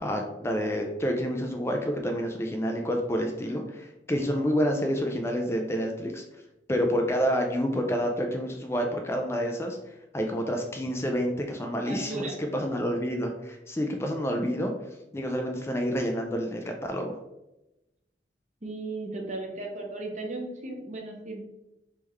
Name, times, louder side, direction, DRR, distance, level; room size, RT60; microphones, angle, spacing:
voice 1, 0.0-6.2 6.7-14.7 15.1-17.1, equal, 15° left, 3 dB, 0.3 m, -28 dB
voice 2, 11.8-12.4 18.6-21.4, right 2 dB, 40° right, 1 dB, 0.8 m, -36 dB
3.5 x 3.3 x 3.1 m, 0.94 s
head